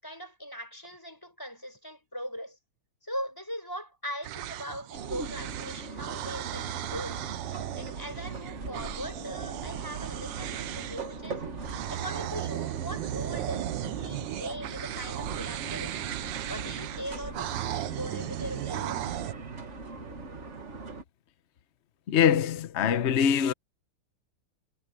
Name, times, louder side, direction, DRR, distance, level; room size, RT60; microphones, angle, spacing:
voice 1, 0.0-2.6 3.0-7.2 7.8-11.4 11.9-16.0 16.5-19.1, equal, 10° left, 6.2 m, -40 dB
sound 1, 4.2-11.2 11.6-19.3, right 12 dB, 80° right, 1.5 m, -36 dB
sound 2, 4.9-21.0, right 3 dB, 40° right, 2.0 m, -41 dB
voice 2, 22.1-23.5, left 8 dB, 55° left, 0.8 m, -23 dB
omnidirectional pair, 2.0 m